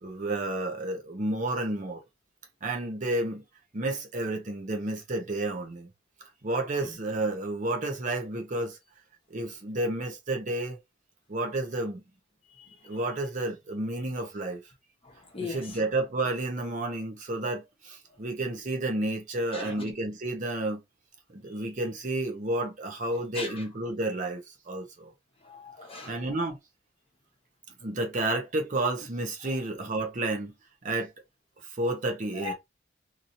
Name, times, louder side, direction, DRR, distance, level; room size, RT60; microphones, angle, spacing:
voice 1, 0.0-2.0 2.6-3.4 3.7-5.9 6.4-8.8 9.3-10.8 11.3-12.0 12.8-14.6 15.4-20.8 21.3-25.1 26.1-26.6 27.8-30.5 30.8-31.1 31.6-32.5, right 2 dB, 40° right, 0.7 m, -31 dB
voice 2, 15.0-15.8 19.5-19.9 23.3-23.6 25.4-26.3 29.4-29.6 32.4-32.5, left 3 dB, 30° left, 1.0 m, -39 dB
2.9 x 2.6 x 2.6 m
head